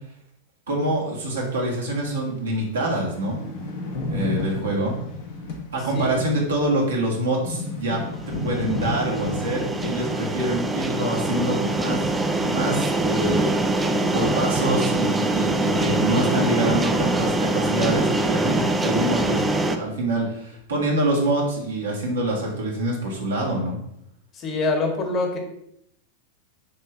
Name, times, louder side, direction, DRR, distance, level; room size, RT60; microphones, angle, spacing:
voice 1, 0.7-3.4 4.1-4.9 5.7-8.0 8.4-12.0 12.4-23.8, right 1 dB, 65° right, -2 dB, 2.0 m, -25 dB
sound 1, 2.1-2.2 2.5-2.6 2.8-13.0 13.3-17.8 18.0-18.1 18.8-19.2, left 2 dB, 50° left, 1.4 m, -34 dB
voice 2, 5.9-6.3 24.3-25.4, left 3 dB, 30° left, 3 dB, 1.6 m, -25 dB
sound 2, 8.2-19.8, right 2 dB, 10° right, 0.6 m, -24 dB
6.7 x 3.3 x 5.5 m, 0.77 s
figure-of-eight pair, 90°, 0 cm